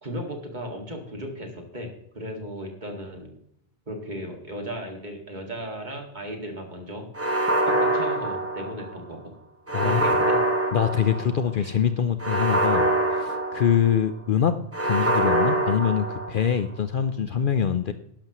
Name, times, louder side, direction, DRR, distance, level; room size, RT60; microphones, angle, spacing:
voice 1, 0.0-3.3 3.9-7.1 7.6-9.3 9.8-10.4 11.6-11.8, equal, 40° right, 3 dB, 2.2 m, -36 dB
sound 1, 7.2-9.0 9.7-11.5 12.2-14.1 14.7-16.6, right 1 dB, 10° right, 1.4 m, -24 dB
voice 2, 9.7-10.0 10.7-14.6 14.8-17.9, left 8 dB, 55° left, 10 dB, 0.7 m, -24 dB
12.0 x 11.5 x 3.0 m, 0.74 s
omnidirectional pair, 1.2 m